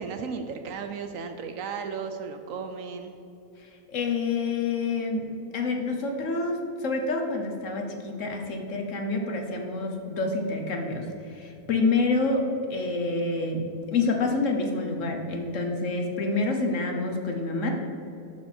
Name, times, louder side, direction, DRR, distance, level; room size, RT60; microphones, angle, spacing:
voice 1, 0.0-3.1, right 5 dB, 70° right, 6 dB, 0.9 m, -35 dB
voice 2, 3.6-5.3 5.5-12.4 12.7-13.6 13.9-17.7, left 3 dB, 60° left, 3 dB, 1.2 m, -27 dB
11.5 x 4.6 x 4.3 m, 2.8 s
omnidirectional pair, 1.6 m